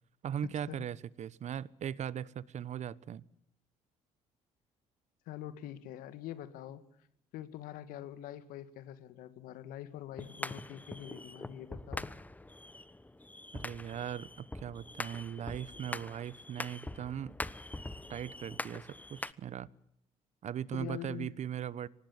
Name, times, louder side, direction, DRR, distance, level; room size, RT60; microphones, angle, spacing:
voice 1, 0.2-3.2 13.5-17.3 18.1-19.7 20.4-21.9, right 9 dB, 50° right, 1.0 m, -39 dB
voice 2, 5.3-6.8 7.3-12.1 20.7-21.3, left 12 dB, 75° left, 2.0 m, -44 dB
sound 1, 10.2-19.3, left 2 dB, 10° left, 1.1 m, -43 dB
24.0 x 19.5 x 7.4 m
hypercardioid pair, 60°, 15 cm